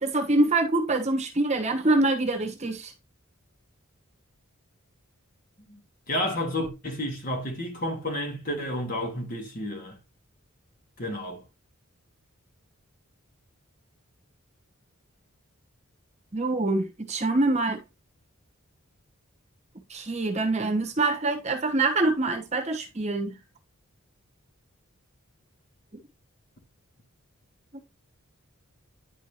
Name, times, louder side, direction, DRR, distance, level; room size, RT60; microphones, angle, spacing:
voice 1, 0.0-2.9 16.3-17.8 19.9-23.4 27.7-27.8, right 2 dB, 30° right, 1.1 m, -25 dB
voice 2, 6.1-10.0 11.0-11.4, left 1 dB, 40° left, 2.1 m, -31 dB
10.5 x 4.6 x 2.9 m
head